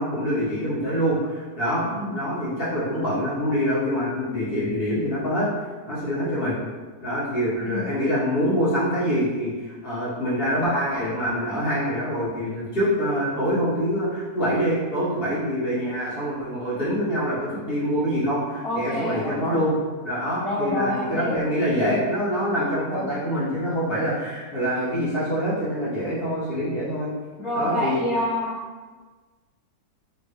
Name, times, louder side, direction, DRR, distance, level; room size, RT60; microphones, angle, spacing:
voice 1, 0.0-5.5 5.9-6.5 7.0-19.7 20.0-27.1 27.5-28.0, equal, 35° left, -10 dB, 1.8 m, -25 dB
voice 2, 18.6-19.7 20.4-21.4 22.9-23.1 27.4-28.5, left 1 dB, 20° left, -11 dB, 1.4 m, -28 dB
5.2 x 2.4 x 3.2 m, 1.4 s
omnidirectional pair, 1.7 m